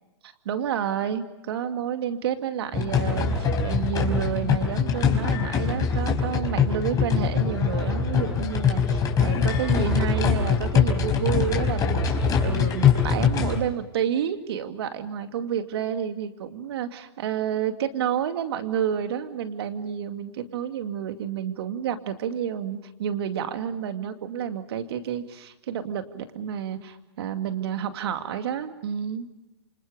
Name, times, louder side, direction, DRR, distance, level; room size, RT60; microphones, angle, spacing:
voice 1, 0.4-29.3, right 9 dB, 65° right, 7 dB, 2.4 m, -30 dB
sound 1, 2.7-13.6, left 6 dB, 25° left, 4.5 m, -23 dB
29.0 x 26.0 x 5.1 m, 0.97 s
hypercardioid pair, 120°, 14 cm